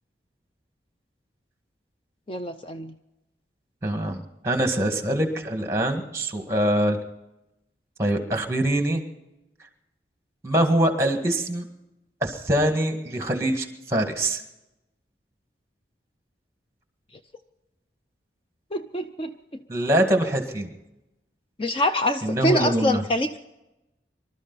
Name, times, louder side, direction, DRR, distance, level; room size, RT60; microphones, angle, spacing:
voice 1, 2.3-2.9 18.7-19.3 21.6-23.4, left 1 dB, 30° left, 7 dB, 0.5 m, -25 dB
voice 2, 3.8-7.0 8.0-9.0 10.4-11.6 12.2-14.4 19.7-20.7 22.2-23.0, right 1 dB, 15° right, 5 dB, 1.9 m, -24 dB
24.5 x 12.5 x 4.1 m, 0.93 s
head